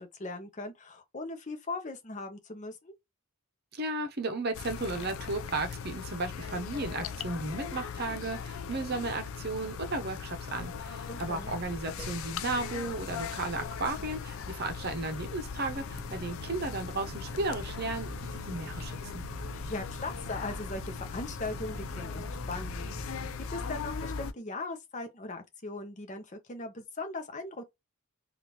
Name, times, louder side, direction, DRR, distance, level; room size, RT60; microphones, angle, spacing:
voice 1, 0.0-2.9 11.1-11.5 19.5-23.2 23.5-27.7, left 2 dB, 35° left, 0.8 m, -39 dB
voice 2, 3.7-19.2, right 2 dB, 50° right, 0.7 m, -34 dB
sound 1, 4.5-24.3, left 7 dB, 70° left, 0.4 m, -40 dB
sound 2, 10.5-24.3, equal, ahead, 1.2 m, -45 dB
sound 3, 15.9-23.3, right 4 dB, 90° right, 0.5 m, -48 dB
3.5 x 2.4 x 2.9 m
head